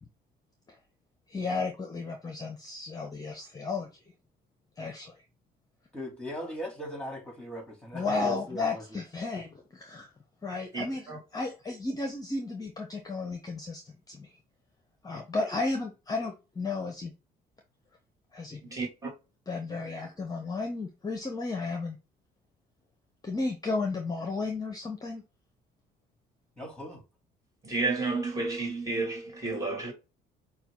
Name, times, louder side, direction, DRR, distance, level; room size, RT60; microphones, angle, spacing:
voice 1, 1.3-3.9 4.8-5.1 7.9-10.1 10.4-11.1 11.3-14.3 15.0-17.1 18.3-18.6 19.5-22.0 23.2-25.2, left 3 dB, 20° left, 0.9 m, -33 dB
voice 2, 5.9-9.0 26.6-27.0, equal, 5° left, 2.7 m, -39 dB
voice 3, 10.7-11.2 18.6-19.1 27.6-29.9, right 3 dB, 20° right, 2.4 m, -31 dB
5.6 x 2.4 x 3.7 m
cardioid pair, 110°, 17 cm